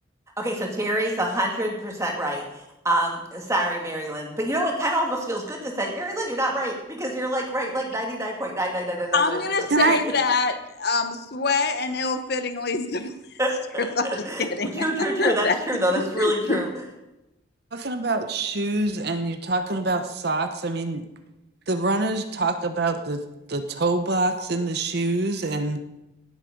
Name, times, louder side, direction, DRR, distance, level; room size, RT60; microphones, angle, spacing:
voice 1, 0.4-2.4 2.8-9.4 13.4-14.5 14.7-16.7, right 1 dB, 15° right, 0 dB, 2.3 m, -26 dB
voice 2, 9.1-13.1 13.8-14.1 14.4-15.6 16.2-16.7, left 4 dB, 50° left, 9 dB, 0.9 m, -25 dB
voice 3, 17.7-21.0 21.7-23.2 23.5-25.8, right 2 dB, 55° right, 8 dB, 0.9 m, -25 dB
18.0 x 8.2 x 5.3 m, 0.93 s
head